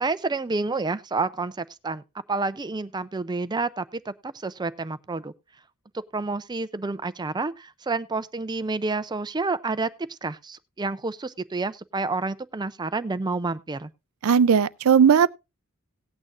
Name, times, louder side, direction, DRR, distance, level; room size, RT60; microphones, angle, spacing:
voice 1, 0.0-2.0 2.3-5.3 6.1-13.9, right 3 dB, 20° right, 0.5 m, -29 dB
voice 2, 14.2-15.3, right 7 dB, 75° right, 0.4 m, -17 dB
18.0 x 8.7 x 2.4 m
head